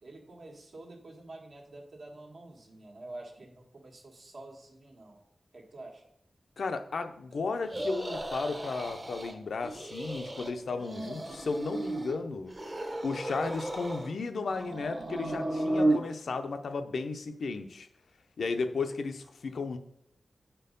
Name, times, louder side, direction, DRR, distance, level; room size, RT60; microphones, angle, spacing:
voice 1, 0.0-5.2 5.5-6.1, right 2 dB, 60° right, 1 dB, 1.5 m, -48 dB
voice 2, 6.6-12.5 13.0-17.9 18.4-19.8, left 4 dB, 75° left, 7 dB, 0.6 m, -34 dB
sound 1, 7.7-9.3 9.6-10.5 10.8-12.2 12.5-14.1 14.5-16.0, right 1 dB, 25° right, 0.9 m, -33 dB
7.3 x 4.5 x 5.2 m, 0.74 s
wide cardioid pair, 150°, 0 cm